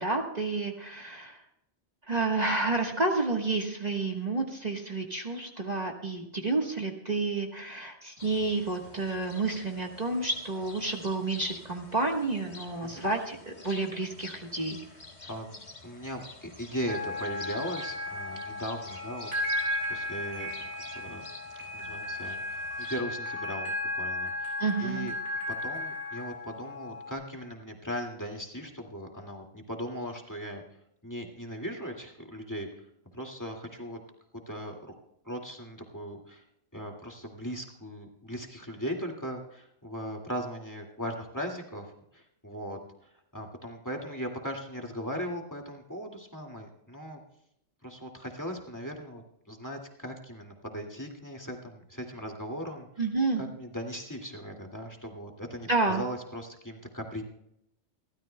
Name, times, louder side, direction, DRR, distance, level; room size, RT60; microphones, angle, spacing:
voice 1, 0.0-1.4 2.1-14.8 24.6-25.1 53.0-53.4 55.7-56.0, right 3 dB, 35° right, 1 dB, 1.5 m, -30 dB
sound 1, 8.2-23.0, left 3 dB, 40° left, 1.8 m, -49 dB
voice 2, 15.3-20.5 20.9-21.2 21.6-25.1 25.5-30.6 31.0-32.9 33.1-34.0 34.3-35.0 35.2-36.4 36.7-47.2 47.8-53.0 53.4-57.2, equal, 15° left, 1 dB, 2.1 m, -38 dB
sound 2, 16.9-27.1, left 1 dB, 75° right, 7.1 m, -35 dB
29.5 x 13.0 x 2.2 m, 0.78 s
omnidirectional pair, 1.2 m